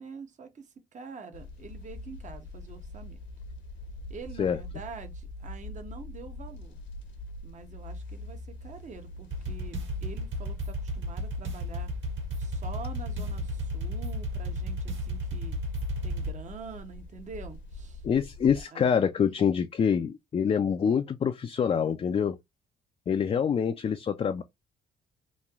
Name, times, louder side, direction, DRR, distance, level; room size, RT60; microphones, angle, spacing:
voice 1, 0.0-3.2 4.1-6.8 7.4-11.9 12.4-15.6 16.0-18.0 18.7-18.9 19.2-19.5, right 5 dB, 40° right, 0.7 m, -45 dB
sound 1, 1.3-18.6, left 2 dB, 65° left, 0.8 m, -44 dB
sound 2, 9.3-16.3, equal, 70° right, 1.5 m, -33 dB
voice 2, 18.0-22.4 23.1-24.4, left 7 dB, 30° left, 0.3 m, -26 dB
3.0 x 2.6 x 2.3 m
cardioid pair, 90°, 20 cm